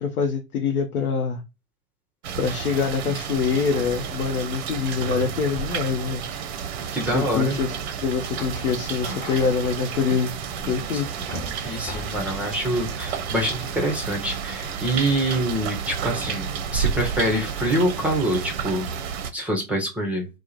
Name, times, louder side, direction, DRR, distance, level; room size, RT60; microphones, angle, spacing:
voice 1, 0.0-1.4 2.4-6.2 7.1-7.7 8.0-10.3 10.7-11.1, left 5 dB, 80° left, 0.6 m, -25 dB
sound 1, 2.2-19.3, right 7 dB, 50° right, 0.5 m, -31 dB
sound 2, 4.1-14.8, left 1 dB, 20° left, 1.1 m, -43 dB
voice 2, 6.9-7.6 10.9-11.0 11.6-18.9 19.3-20.3, right 1 dB, 5° right, 0.5 m, -25 dB
2.2 x 2.0 x 2.9 m
figure-of-eight pair, 95°, 43 cm